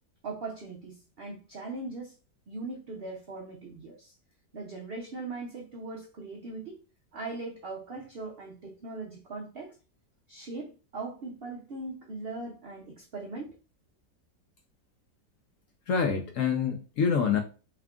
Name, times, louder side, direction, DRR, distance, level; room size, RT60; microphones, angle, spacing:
voice 1, 0.2-2.1 2.5-4.1 4.5-6.8 7.1-9.8 10.3-13.5, right 3 dB, 90° right, 0.5 m, -40 dB
voice 2, 15.9-17.4, left 6 dB, 70° left, 0.8 m, -26 dB
3.6 x 2.4 x 3.5 m
omnidirectional pair, 1.8 m